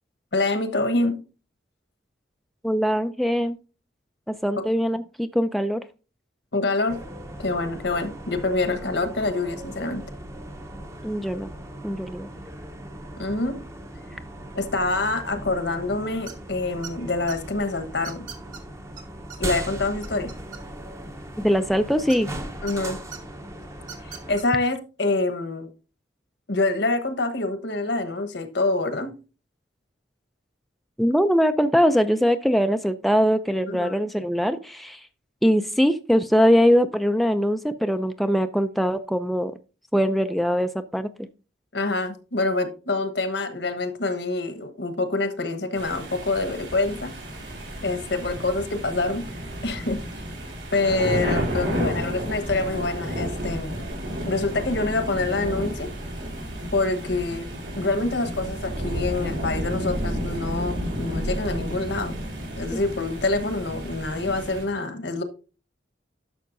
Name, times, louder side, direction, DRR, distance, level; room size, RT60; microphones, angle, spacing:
voice 1, 0.3-1.2 6.5-7.0 7.4-10.0 13.2-13.6 14.5-18.2 19.4-20.3 22.6-23.0 24.3-25.7 26.5-29.1 33.7-34.0 41.7-47.1 47.8-49.2 49.6-50.0 50.7-53.8 54.3-55.9 56.7-57.5 57.8-62.2 62.6-65.2, left 2 dB, 70° left, 1.2 m, -26 dB
voice 2, 2.6-3.6 4.3-5.8 11.0-11.5 11.8-12.3 21.4-22.3 31.0-35.0 35.4-39.5 39.9-41.1 62.7-62.8, equal, ahead, 0.3 m, -22 dB
sound 1, 6.9-24.4, right 1 dB, 15° right, 0.8 m, -38 dB
sound 2, 16.3-16.5 16.8-17.4 18.0-18.6 19.0-19.1 19.3-19.4 19.7-20.9 22.1-22.7 23.1-23.2 23.8-24.4, right 8 dB, 45° right, 1.3 m, -40 dB
sound 3, 45.8-64.6, equal, 80° right, 3.9 m, -31 dB
11.0 x 6.3 x 2.6 m
head